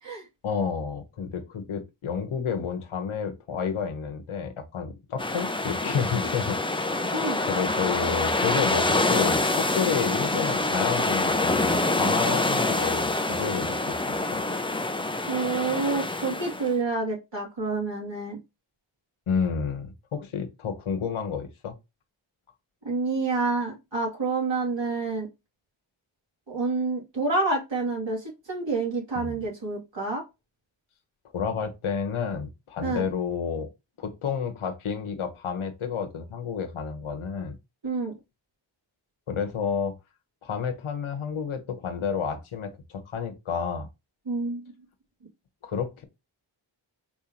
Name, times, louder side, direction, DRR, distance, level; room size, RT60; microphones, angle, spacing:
voice 1, 0.4-6.9 7.4-14.4 19.3-21.7 29.1-29.4 31.3-33.7 34.0-37.6 39.3-39.9 40.4-43.9 45.6-46.0, left 6 dB, 80° left, 1.1 m, -30 dB
sound 1, 5.2-16.7, left 2 dB, 10° left, 0.6 m, -26 dB
voice 2, 15.3-18.4 22.8-25.3 26.5-30.2 32.8-33.1 37.8-38.1 44.3-44.6, right 3 dB, 60° right, 2.7 m, -28 dB
4.5 x 3.6 x 2.9 m
cardioid pair, 45°, 49 cm